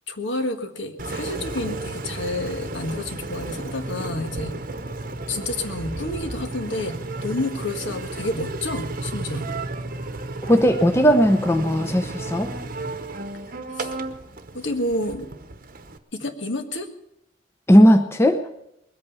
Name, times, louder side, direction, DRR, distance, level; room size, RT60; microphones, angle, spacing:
voice 1, 0.1-4.5 5.3-9.5 13.7-14.0 14.5-15.3 16.1-16.9, left 2 dB, 65° left, 7 dB, 1.6 m, -29 dB
Engine, 1.0-16.0, right 2 dB, 45° right, 1.0 m, -33 dB
voice 2, 10.5-12.5 17.7-18.4, equal, 15° left, 6 dB, 0.7 m, -16 dB
21.0 x 8.5 x 6.8 m, 0.83 s
head